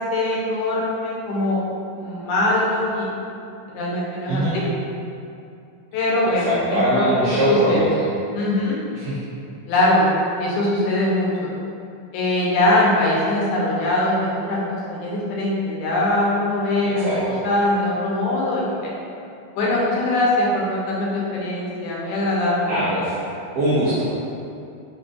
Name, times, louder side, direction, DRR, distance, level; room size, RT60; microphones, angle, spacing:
voice 1, 0.1-1.6 2.0-3.1 3.7-4.6 5.9-7.9 8.3-8.8 9.7-10.1 10.4-11.5 12.1-18.9 19.6-22.8, left 1 dB, 90° left, -5 dB, 2.2 m, -22 dB
voice 2, 6.4-7.9 9.0-9.2 17.0-17.4 22.7-23.1 23.6-24.2, right 1 dB, 80° right, -10 dB, 1.3 m, -21 dB
4.9 x 3.9 x 2.4 m, 2.6 s
omnidirectional pair, 3.4 m